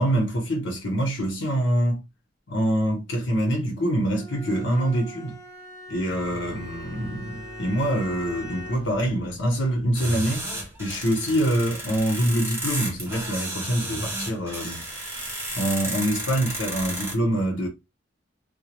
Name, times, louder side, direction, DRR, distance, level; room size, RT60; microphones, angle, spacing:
voice 1, 0.0-2.0 2.5-5.4 5.9-10.5 10.8-14.8 15.5-17.7, right 1 dB, 80° left, 0.8 m, -25 dB
Bowed string instrument, 4.1-9.0, equal, 15° left, 0.4 m, -41 dB
sound 1, 6.0-11.5, right 1 dB, 85° right, 0.9 m, -44 dB
sound 2, 9.9-17.2, right 1 dB, 15° right, 0.8 m, -33 dB
2.2 x 2.1 x 2.9 m
head